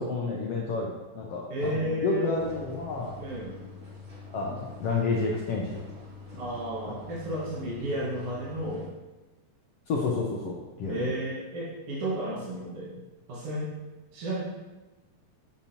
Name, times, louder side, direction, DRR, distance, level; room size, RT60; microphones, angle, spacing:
voice 1, 0.0-3.1 4.3-5.8 6.9-7.0 9.9-11.1, left 3 dB, 85° left, -3 dB, 1.3 m, -30 dB
voice 2, 1.5-2.4 3.2-3.6 6.3-8.9 10.9-12.9 13.3-13.7 14.1-14.4, right 1 dB, 50° right, -8 dB, 2.1 m, -32 dB
sound 1, 2.3-8.9, left 4 dB, 30° right, 1.8 m, -45 dB
8.2 x 7.3 x 2.9 m, 1.1 s
omnidirectional pair, 3.8 m